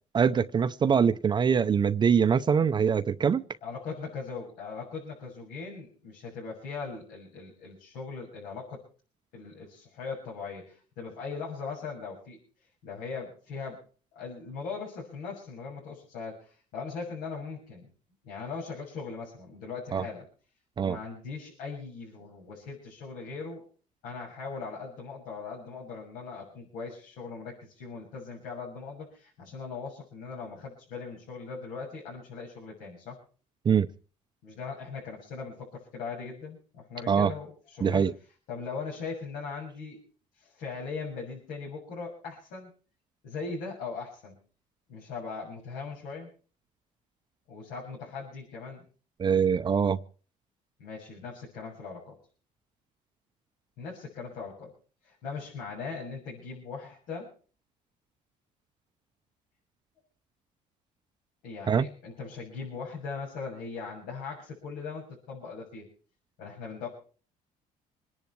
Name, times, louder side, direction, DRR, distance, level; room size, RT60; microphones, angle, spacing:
voice 1, 0.1-3.4 19.9-20.0 20.8-21.0 33.6-33.9 37.1-37.3 37.8-38.1 49.2-50.0 61.7-61.9, right 7 dB, 30° right, 0.7 m, -23 dB
voice 2, 3.6-8.8 9.3-12.4 12.8-13.8 14.2-17.9 18.2-20.2 20.8-23.6 24.0-33.2 34.4-38.1 38.5-40.0 40.4-42.7 43.2-44.4 44.9-46.3 47.5-48.8 50.8-52.2 53.8-54.7 55.0-57.3 61.4-65.9 66.4-66.9, left 5 dB, 85° left, 6.9 m, -39 dB
26.5 x 10.5 x 4.6 m
cardioid pair, 115°, 14 cm